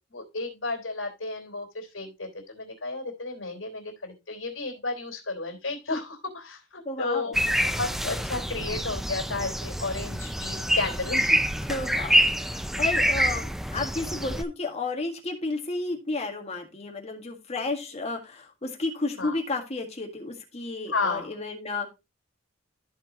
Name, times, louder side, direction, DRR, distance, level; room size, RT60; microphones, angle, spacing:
voice 1, 0.0-11.4 13.2-13.3 19.2-19.4 20.9-21.3, left 3 dB, 80° left, 2 dB, 3.2 m, -33 dB
voice 2, 6.9-7.4 11.7-21.9, left 3 dB, 35° left, 2 dB, 1.8 m, -32 dB
sound 1, 7.3-14.4, equal, ahead, 0.4 m, -26 dB
14.0 x 4.8 x 2.9 m, 0.26 s
head